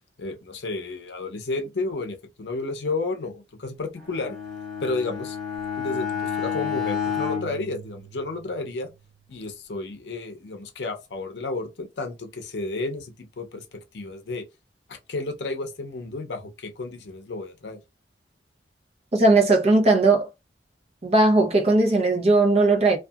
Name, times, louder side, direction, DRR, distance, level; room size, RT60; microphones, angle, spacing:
voice 1, 0.2-4.4 4.8-5.4 5.8-8.9 9.3-14.4 14.9-17.8, left 3 dB, 75° left, 0.6 m, -32 dB
Bowed string instrument, 4.0-8.6, left 7 dB, ahead, 1.2 m, -31 dB
voice 2, 19.1-20.3 21.0-23.0, right 2 dB, 35° right, 0.7 m, -18 dB
2.7 x 2.4 x 2.3 m
head